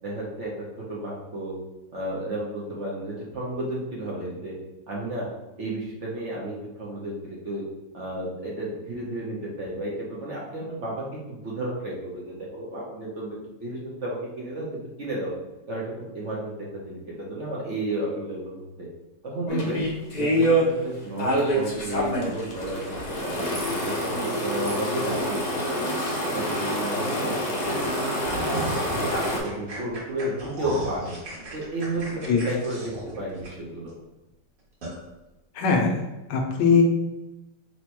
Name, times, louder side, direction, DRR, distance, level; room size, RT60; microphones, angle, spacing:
voice 1, 0.0-1.6 1.9-4.6 4.9-5.3 5.6-7.6 7.9-13.4 13.6-15.3 15.7-18.9 19.2-19.8 20.1-25.9 26.2-27.8 28.2-31.2 31.5-33.9, right 1 dB, 55° right, -4 dB, 1.0 m, -32 dB
sound 1, 19.5-20.6 21.2-29.4, equal, 50° left, 0.5 m, -26 dB
sound 2, 27.6-33.9 34.3-34.4 34.8-35.0, right 2 dB, 80° right, 2.1 m, -36 dB
voice 2, 35.5-36.0 36.3-36.8, left 5 dB, 80° left, 1 dB, 1.4 m, -20 dB
4.3 x 2.2 x 4.4 m, 0.99 s
omnidirectional pair, 1.9 m